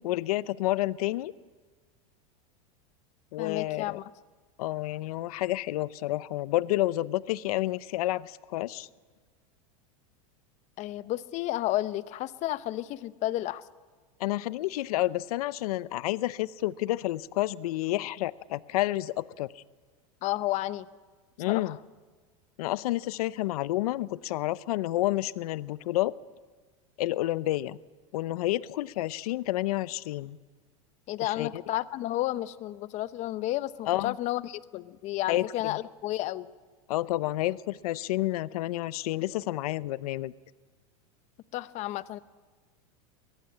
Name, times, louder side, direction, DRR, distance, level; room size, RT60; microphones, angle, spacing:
voice 1, 0.0-1.3 3.3-4.0 4.6-8.9 14.2-19.6 21.4-21.8 22.6-26.1 27.0-27.8 28.1-30.4 31.2-31.5 33.9-34.2 35.3-35.8 36.9-40.3, left 16 dB, 80° left, 18 dB, 0.6 m, -30 dB
voice 2, 3.4-4.1 10.8-13.6 20.2-20.9 21.5-21.8 31.1-36.5 41.5-42.2, left 15 dB, 40° left, 16 dB, 0.8 m, -32 dB
22.5 x 18.5 x 8.5 m, 1.4 s
supercardioid pair, 140°, 19 cm